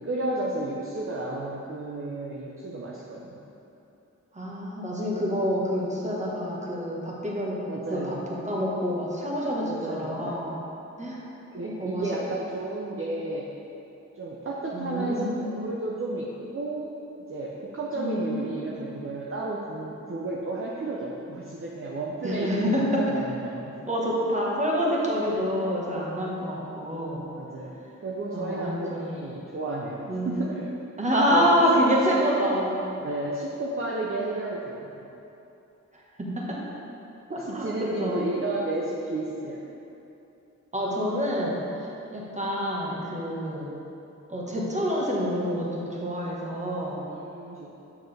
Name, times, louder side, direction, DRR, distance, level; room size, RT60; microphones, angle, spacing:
voice 1, 0.0-3.4 7.6-8.3 9.6-10.5 11.5-13.5 14.2-16.9 17.3-23.8 27.4-30.7 31.1-31.7 32.0-32.2 33.0-35.1 37.3-39.6 47.1-47.7, right 2 dB, 45° right, -4 dB, 0.7 m, -32 dB
voice 2, 4.3-7.6 7.9-10.6 11.0-11.2 11.6-12.0 14.7-15.4 18.0-18.8 22.2-23.0 23.9-27.2 28.3-29.2 30.1-30.4 31.0-32.7 36.2-36.6 37.3-38.2 40.7-41.6 42.1-43.7 44.3-47.0, equal, 25° right, -4 dB, 1.4 m, -27 dB
6.4 x 6.1 x 3.4 m, 2.8 s
cardioid pair, 60°, 30 cm